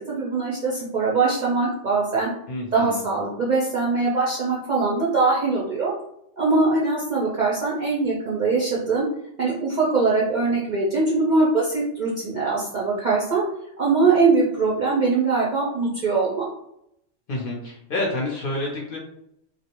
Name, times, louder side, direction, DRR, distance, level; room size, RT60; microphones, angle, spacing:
voice 1, 0.0-2.3 2.7-5.9 6.4-9.1 9.4-13.4 13.8-16.5, right 3 dB, 55° right, -5 dB, 0.5 m, -22 dB
voice 2, 2.5-3.0 17.3-19.0, left 2 dB, 55° left, -2 dB, 0.7 m, -28 dB
2.4 x 2.0 x 2.8 m, 0.77 s
omnidirectional pair, 1.3 m